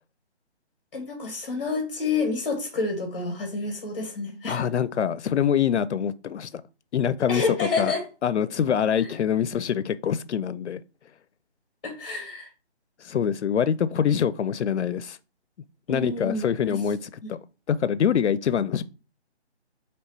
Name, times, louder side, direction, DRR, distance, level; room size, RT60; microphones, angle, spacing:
voice 1, 0.9-4.6 7.3-8.0 11.8-12.5 15.9-16.7 17.2-17.3, left 3 dB, 10° left, 1.1 m, -29 dB
voice 2, 4.5-6.6 6.9-7.9 8.2-10.8 13.0-15.2 15.9-17.4 17.7-18.8, left 8 dB, 80° left, 0.5 m, -25 dB
3.0 x 3.0 x 4.5 m
hypercardioid pair, 170°, 33 cm